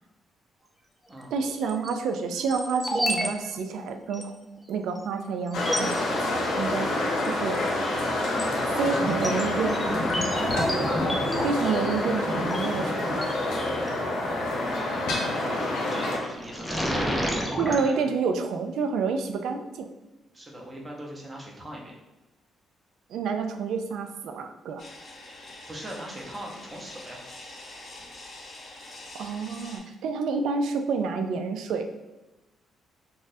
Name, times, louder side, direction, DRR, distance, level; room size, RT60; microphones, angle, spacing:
voice 1, 1.3-4.3 4.7-6.9 7.3-7.6 8.8-10.2 11.4-13.3 17.6-19.9 23.1-24.8 29.2-31.8, right 5 dB, 80° right, 6 dB, 0.3 m, -29 dB
sound 1, 1.4-1.9 2.4-3.3 3.5-3.6 4.1-4.2 4.9-5.0 5.5-5.9 7.2-7.6 8.0-13.9 15.5-15.9 16.3-17.8, equal, ahead, 0.6 m, -31 dB
sound 2, 5.5-16.2, left 1 dB, 80° left, 0.9 m, -27 dB
voice 2, 15.3-18.0 20.3-21.9 25.7-27.2, right 1 dB, 20° right, -2 dB, 0.9 m, -40 dB
sound 3, 24.8-29.8, left 2 dB, 60° left, 1.2 m, -45 dB
3.9 x 2.5 x 2.6 m, 1.0 s
cardioid pair, 90°, 0 cm